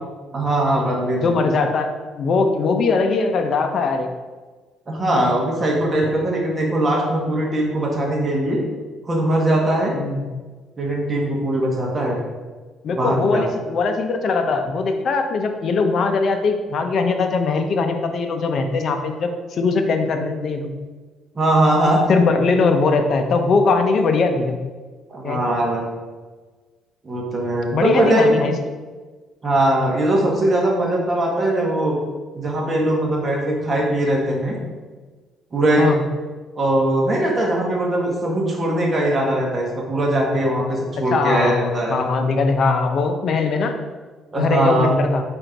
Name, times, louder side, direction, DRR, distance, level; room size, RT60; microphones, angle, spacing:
voice 1, 0.3-1.3 4.9-8.6 9.1-9.9 10.8-12.2 13.0-13.4 21.3-22.0 25.1-25.9 27.0-28.4 29.4-32.0 32.3-34.6 35.5-35.9 36.5-42.0 44.3-44.9, right 1 dB, 25° right, -2 dB, 1.6 m, -20 dB
voice 2, 1.2-4.1 9.9-10.3 12.8-20.7 22.1-24.6 25.2-25.6 27.7-28.6 35.8-36.0 41.1-43.7 44.3-45.2, left 4 dB, 50° left, 5 dB, 0.7 m, -20 dB
4.4 x 4.4 x 5.2 m, 1.4 s
cardioid pair, 120°, 0 cm